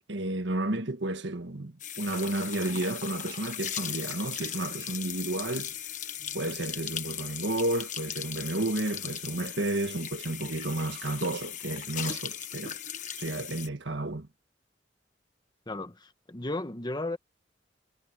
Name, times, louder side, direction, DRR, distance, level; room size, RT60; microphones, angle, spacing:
voice 1, 0.1-5.7 6.3-12.8 13.1-14.3, right 2 dB, 65° right, 1.5 m, -32 dB
sound 1, 1.8-13.7, left 10 dB, 40° left, 1.3 m, -38 dB
voice 2, 15.7-17.2, left 2 dB, 20° left, 1.1 m, -34 dB
head